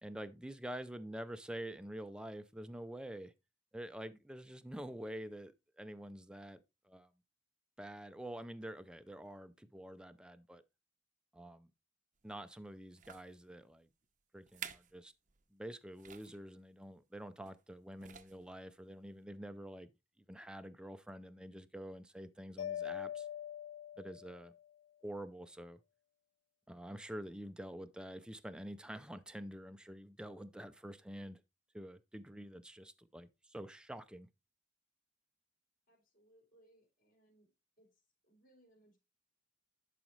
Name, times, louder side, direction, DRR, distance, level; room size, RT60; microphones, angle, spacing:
voice 1, 0.0-3.3 3.7-7.1 7.8-10.6 11.3-11.7 12.2-13.9 14.3-15.1 15.5-19.9 20.3-23.3 24.0-24.5 25.0-25.8 26.7-31.4 31.7-34.3, right 1 dB, 5° right, 0.5 m, -47 dB
sound 1, 12.2-12.4 12.9-13.3 14.0-14.1 14.4-15.0 15.3-15.4 16.0-16.4 17.4-17.7 18.0-18.5 19.2-19.3, right 8 dB, 40° right, 0.7 m, -50 dB
Mallet percussion, 22.6-24.6, left 10 dB, 80° left, 0.4 m, -43 dB
voice 2, 35.9-37.5 37.8-39.0, right 1 dB, 50° left, 3.8 m, -68 dB
11.0 x 5.0 x 3.2 m
head